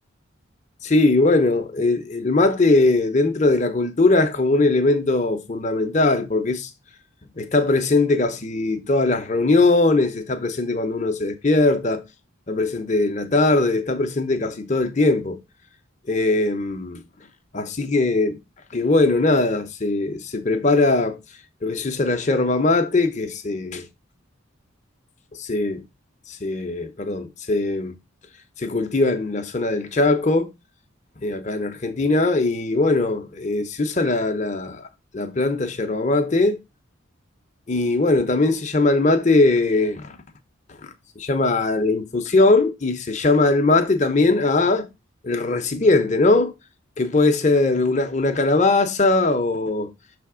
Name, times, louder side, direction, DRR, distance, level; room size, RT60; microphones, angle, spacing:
voice 1, 0.8-6.7 7.4-12.0 12.5-15.4 16.1-17.0 17.5-18.4 18.7-21.2 21.6-23.9 25.4-25.8 26.3-27.9 28.6-30.5 31.2-34.9 35.1-36.6 37.7-40.1 40.8-40.9 41.2-44.9 45.2-46.5 47.0-49.9, left 2 dB, 35° left, 0.7 m, -20 dB
6.3 x 3.4 x 4.8 m
head